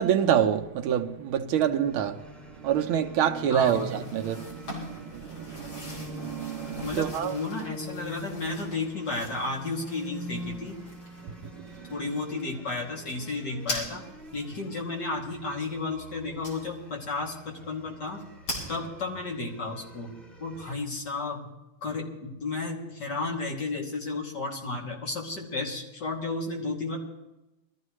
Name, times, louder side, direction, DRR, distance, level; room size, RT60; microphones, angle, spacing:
voice 1, 0.0-2.2 2.6-7.3 11.2-11.3 11.6-11.9, right 9 dB, 75° right, 1.6 m, -27 dB
sound 1, 1.8-20.9, equal, ahead, 1.4 m, -45 dB
voice 2, 3.5-3.9 6.8-10.8 11.9-14.0 14.3-18.2 18.7-20.1 20.4-21.5 21.8-27.0, left 3 dB, 50° left, 3.2 m, -33 dB
sound 2, 3.6-14.6 15.2-15.3 16.4-16.9 17.3-17.4 17.7-17.8 18.0-18.7, left 1 dB, 75° left, 5.2 m, -41 dB
23.0 x 14.0 x 3.2 m
omnidirectional pair, 2.4 m